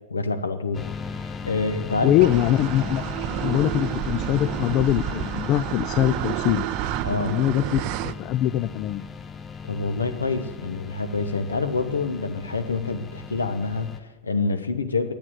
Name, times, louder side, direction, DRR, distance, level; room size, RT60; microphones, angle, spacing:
voice 1, 0.1-0.8 1.2-2.3 7.0-7.4 9.7-15.1, left 3 dB, 75° left, 9 dB, 0.9 m, -27 dB
sound 1, 0.7-14.0, left 5 dB, 20° left, 0.7 m, -37 dB
voice 2, 2.0-3.0 3.4-6.7 7.1-9.1, left 13 dB, 40° left, 14 dB, 0.3 m, -23 dB
sound 2, 2.2-8.1, right 14 dB, 45° right, 0.4 m, -30 dB
8.6 x 8.6 x 9.0 m, 1.2 s
figure-of-eight pair, 90°, 0 cm